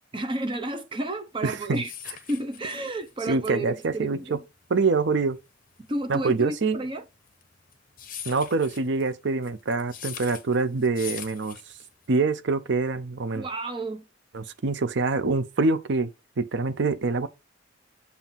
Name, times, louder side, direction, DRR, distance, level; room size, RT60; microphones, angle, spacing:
voice 1, 0.1-1.9 2.3-4.4 5.9-7.0 13.3-14.1, right 1 dB, 25° right, 0.8 m, -31 dB
sound 1, 1.4-12.2, left 9 dB, 45° left, 1.0 m, -42 dB
voice 2, 1.4-1.8 3.3-4.4 4.7-5.4 6.1-6.8 8.3-11.6 12.1-13.5 14.3-16.1 16.4-17.3, right 3 dB, 65° right, 0.6 m, -25 dB
7.2 x 2.8 x 5.7 m
head